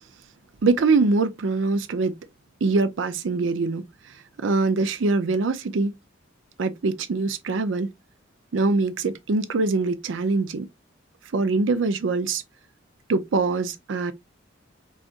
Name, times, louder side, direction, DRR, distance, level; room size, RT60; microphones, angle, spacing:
voice 1, 0.6-2.1 2.6-3.8 4.4-5.9 6.6-7.9 8.5-10.7 11.3-12.4 13.1-14.1, right 3 dB, 70° right, 0.5 m, -23 dB
3.9 x 2.4 x 2.4 m
head